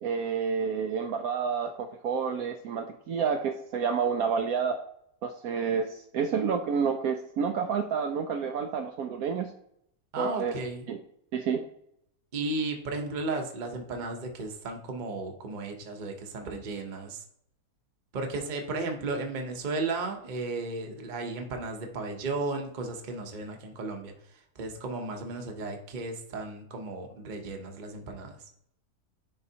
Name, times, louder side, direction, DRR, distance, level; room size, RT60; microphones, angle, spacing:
voice 1, 0.0-4.8 5.2-9.5 10.2-10.5 10.9-11.0 11.3-11.6, right 6 dB, 70° right, 5 dB, 1.0 m, -29 dB
voice 2, 10.1-10.9 12.3-17.2 18.1-28.4, right 3 dB, 35° right, 3 dB, 0.9 m, -34 dB
10.5 x 3.9 x 2.8 m, 0.71 s
omnidirectional pair, 1.6 m